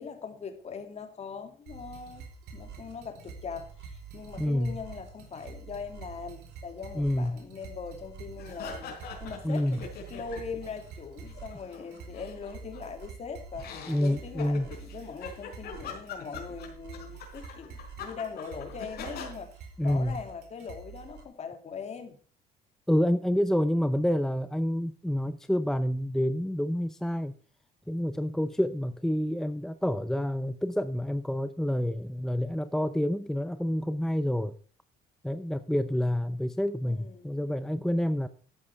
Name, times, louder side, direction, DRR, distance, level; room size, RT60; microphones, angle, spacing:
voice 1, 0.0-2.3 2.5-9.8 10.1-22.2 36.8-37.3, left 5 dB, 40° left, 2.7 m, -41 dB
sound 1, 1.7-21.2, right 5 dB, 80° right, 4.4 m, -46 dB
voice 2, 4.4-4.8 6.9-7.4 9.4-9.8 13.9-14.7 19.8-20.2 22.9-27.3 27.9-34.5 35.2-38.3, equal, 5° left, 0.6 m, -28 dB
sound 2, 8.4-10.7 11.0-13.0 13.5-19.3, left 5 dB, 70° left, 4.4 m, -43 dB
13.0 x 11.0 x 3.5 m
cardioid pair, 110°, 17 cm